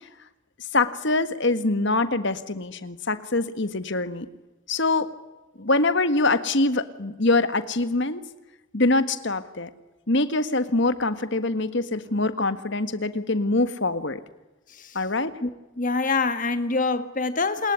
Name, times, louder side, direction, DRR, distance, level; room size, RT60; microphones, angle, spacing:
voice 1, 0.7-4.3 4.7-5.1 5.6-8.2 8.7-9.7 10.1-14.2 15.0-15.4, left 2 dB, 55° left, 11 dB, 1.7 m, -24 dB
voice 2, 15.8-17.7, left 3 dB, 35° left, 10 dB, 1.7 m, -25 dB
28.0 x 21.0 x 9.7 m, 1.0 s
head